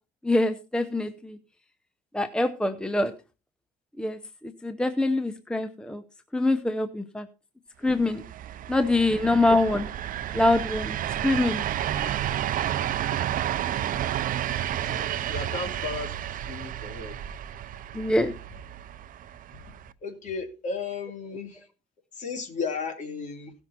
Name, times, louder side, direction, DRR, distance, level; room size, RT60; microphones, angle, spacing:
voice 1, 0.2-1.4 2.1-3.1 4.0-6.0 6.3-7.3 7.8-8.2 8.7-9.9 10.3-11.0 11.2-11.6 12.0-12.1 17.9-18.3, left 2 dB, 5° left, 0.7 m, -24 dB
sound 1, 8.0-19.9, right 11 dB, 55° right, 0.7 m, -31 dB
voice 2, 14.8-17.2 19.5-19.6 20.0-21.7 22.1-23.5, left 4 dB, 45° left, 3.0 m, -35 dB
17.0 x 6.2 x 4.2 m
cardioid pair, 110°, 17 cm